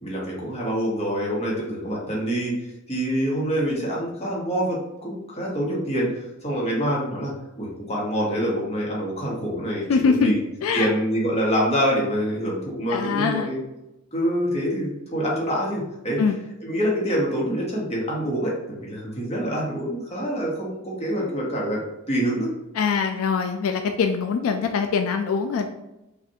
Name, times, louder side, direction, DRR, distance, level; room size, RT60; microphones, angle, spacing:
voice 1, 0.0-2.5 2.9-6.1 6.4-7.3 7.6-10.4 10.7-13.6 14.1-16.2 16.6-21.8 22.1-22.5, equal, 30° left, -4 dB, 1.1 m, -26 dB
voice 2, 9.9-10.3 10.6-10.9 12.9-13.5 16.2-16.4 22.8-25.7, left 5 dB, 80° left, 6 dB, 0.3 m, -23 dB
5.3 x 2.5 x 2.8 m, 0.93 s
head